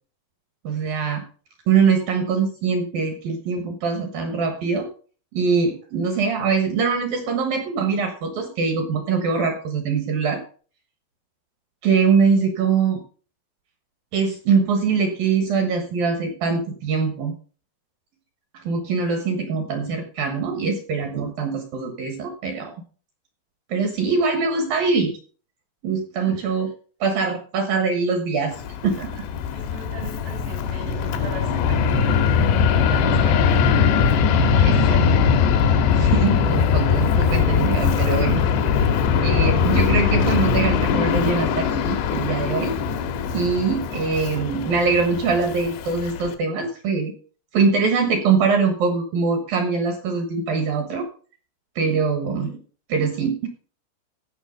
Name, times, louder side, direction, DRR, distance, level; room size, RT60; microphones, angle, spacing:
voice 1, 0.6-1.2 1.7-4.9 5.3-10.4 11.8-13.0 14.1-17.3 18.5-22.8 23.7-25.1 25.8-26.7 27.0-28.6 28.8-29.2 34.6-35.2 35.6-38.4 38.8-39.0 39.2-42.8 43.3-47.1 47.5-51.1 51.8-52.5 52.9-53.5, right 5 dB, 65° right, 5 dB, 2.5 m, -23 dB
voice 2, 26.3-26.7 29.5-34.0 34.3-34.8 52.4-52.6, right 3 dB, 80° right, 3 dB, 5.7 m, -40 dB
Fixed-wing aircraft airplane, 28.5-46.3, left 6 dB, 75° left, 2.9 m, -21 dB
15.5 x 5.9 x 5.1 m, 0.40 s
omnidirectional pair, 5.7 m